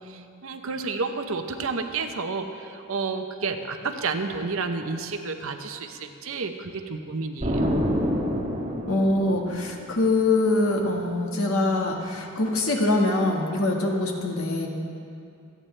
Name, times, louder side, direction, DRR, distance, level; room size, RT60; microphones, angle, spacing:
voice 1, 0.0-7.5, right 4 dB, 70° right, 6 dB, 0.9 m, -30 dB
Explosion, 7.4-10.1, equal, 30° right, 1.3 m, -27 dB
voice 2, 8.9-14.7, left 2 dB, 75° left, 0 dB, 1.6 m, -24 dB
26.5 x 9.1 x 3.3 m, 2.5 s
head